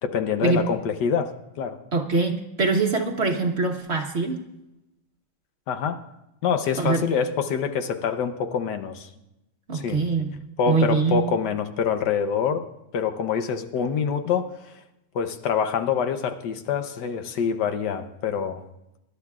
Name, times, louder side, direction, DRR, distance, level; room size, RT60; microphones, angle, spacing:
voice 1, 0.0-1.3 1.6-1.8 5.7-6.0 6.4-9.1 9.7-10.0 10.6-12.6 12.9-14.7 15.1-18.6, left 7 dB, 70° left, 8 dB, 1.4 m, -25 dB
voice 2, 1.9-4.4 6.8-7.0 9.7-10.4 10.7-11.2, right 4 dB, 45° right, 3 dB, 1.1 m, -23 dB
25.0 x 11.5 x 2.4 m, 0.89 s
omnidirectional pair, 2.0 m